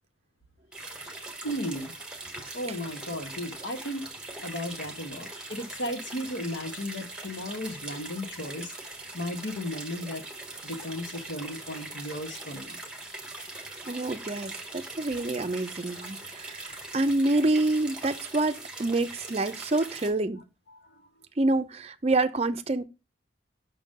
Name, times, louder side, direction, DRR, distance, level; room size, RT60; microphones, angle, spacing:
sound 1, 0.7-20.1, right 2 dB, 5° right, 1.1 m, -41 dB
voice 1, 1.4-1.9 2.5-4.1 4.4-8.7 9.1-10.2 10.6-12.8 20.7-21.0, left 1 dB, 80° left, 1.2 m, -35 dB
voice 2, 13.9-20.4 21.4-22.8, right 2 dB, 35° right, 0.5 m, -27 dB
5.9 x 3.7 x 5.2 m
head